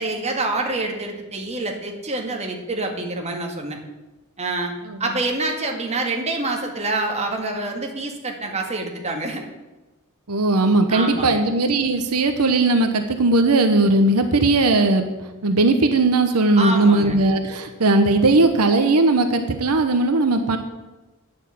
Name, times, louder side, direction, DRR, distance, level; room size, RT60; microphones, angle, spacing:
voice 1, 0.0-3.8 4.4-4.7 5.0-9.4 10.9-11.4 16.6-17.2, right 2 dB, 30° right, 2 dB, 1.8 m, -26 dB
voice 2, 10.3-20.6, right 2 dB, 85° right, 7 dB, 1.0 m, -18 dB
9.6 x 6.5 x 8.5 m, 1.1 s
head